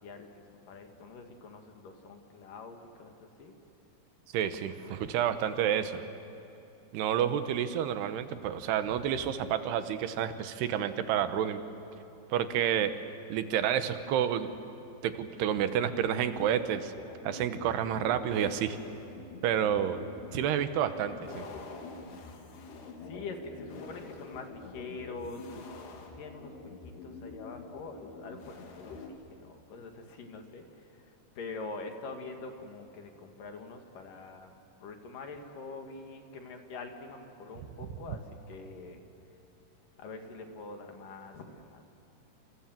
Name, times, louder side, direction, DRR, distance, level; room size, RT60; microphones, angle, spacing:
voice 1, 0.0-3.5 23.0-39.0 40.0-41.8, left 3 dB, 60° left, 4 dB, 3.1 m, -45 dB
voice 2, 4.3-6.0 6.9-11.6 12.3-12.9 13.3-14.5 15.0-16.9 17.2-18.8 19.4-20.0 20.3-21.5, right 9 dB, 80° right, 10 dB, 3.1 m, -29 dB
sound 1, 16.3-29.1, left 3 dB, 80° left, 4.1 m, -46 dB
28.0 x 27.5 x 7.5 m, 2.8 s
omnidirectional pair, 4.7 m